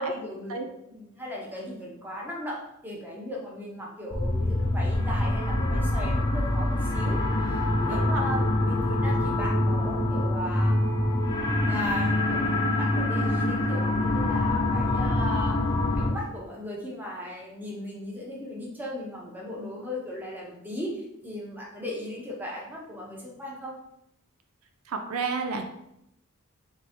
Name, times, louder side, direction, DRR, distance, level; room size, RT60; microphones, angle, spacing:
voice 1, 0.0-2.6 2.8-7.6 7.9-10.8 11.3-15.6 15.9-23.7, equal, 10° right, -3 dB, 1.0 m, -37 dB
sound 1, 4.1-16.1, left 1 dB, 20° left, 0.5 m, -25 dB
voice 2, 7.9-8.3 24.9-25.6, right 4 dB, 75° right, 5 dB, 0.5 m, -31 dB
3.4 x 3.1 x 4.2 m, 0.79 s
head